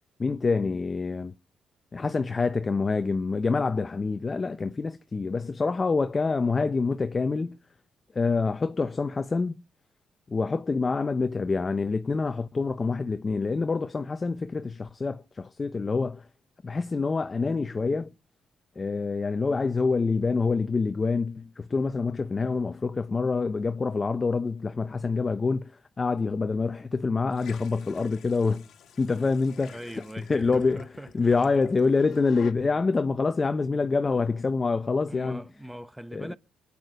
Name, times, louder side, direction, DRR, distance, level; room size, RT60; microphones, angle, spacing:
voice 1, 0.2-1.3 1.9-7.6 8.1-9.6 10.3-16.3 16.6-18.1 18.8-28.7 29.0-30.0 30.3-30.8 31.1-35.4 36.1-36.3, left 4 dB, 30° left, 0.6 m, -26 dB
sound 1, 27.3-32.5, left 9 dB, 70° left, 1.3 m, -47 dB
voice 2, 29.6-31.3 35.1-36.4, right 1 dB, 5° right, 0.9 m, -41 dB
24.0 x 8.5 x 5.0 m
cardioid pair, 90°, 0 cm